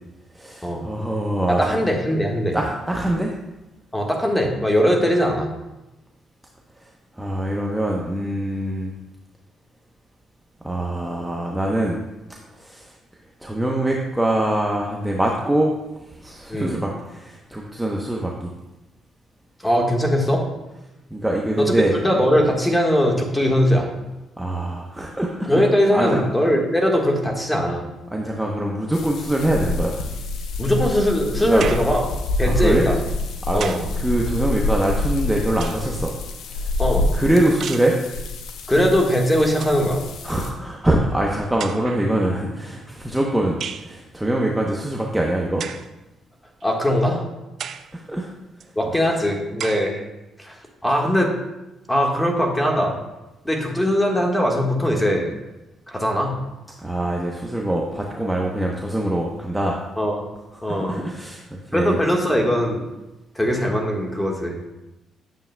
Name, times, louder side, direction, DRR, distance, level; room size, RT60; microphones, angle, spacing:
voice 1, 0.3-1.8 2.5-3.3 7.1-8.9 10.6-12.0 12.5-12.9 13.4-15.7 16.0-18.5 21.1-22.0 24.4-25.6 25.9-26.2 28.1-30.0 31.4-31.7 32.4-32.9 33.5-33.6 34.0-36.1 36.5-36.7 37.1-38.0 40.2-45.6 47.9-48.3 56.8-59.8 60.7-62.0, right 1 dB, 5° right, -1 dB, 0.8 m, -23 dB
voice 2, 1.5-2.6 3.9-5.5 16.5-16.8 19.6-20.4 21.6-21.7 22.0-23.9 25.5-27.8 30.6-32.0 32.4-33.0 33.5-33.8 36.8-37.1 38.7-40.0 46.6-47.2 48.7-50.0 50.4-50.5 50.8-51.3 51.9-53.0 53.4-55.3 55.9-56.4 60.0-60.3 60.6-61.0 61.7-62.8 63.3-64.6, equal, 10° left, 0 dB, 1.5 m, -20 dB
sound 1, 28.9-40.5, left 2 dB, 80° left, 0.7 m, -27 dB
sound 2, 31.6-32.0 33.1-34.0 35.1-36.0 37.6-38.0 39.1-39.2 39.5-39.9 40.9-41.0 41.6-42.1 43.6-43.9 45.6-45.9 46.6-46.7 47.6-47.9 48.6-48.7 49.6-49.9, right 8 dB, 65° right, 0.3 m, -34 dB
9.5 x 7.0 x 2.2 m, 1.0 s
cardioid pair, 90°, 0 cm